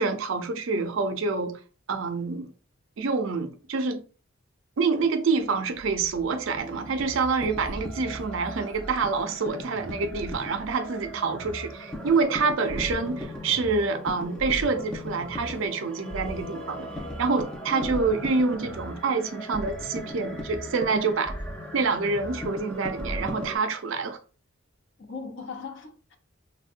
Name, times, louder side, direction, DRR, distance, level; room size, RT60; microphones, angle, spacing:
voice 1, 0.0-1.6 1.9-2.5 3.0-4.0 4.8-16.9 17.2-21.3 21.7-24.2, right 4 dB, 70° right, 0.4 m, -27 dB
sound 1, 5.4-23.6, equal, 5° left, 0.3 m, -37 dB
voice 2, 17.7-18.0 25.0-26.2, left 5 dB, 60° left, 0.5 m, -38 dB
3.4 x 2.1 x 2.4 m
head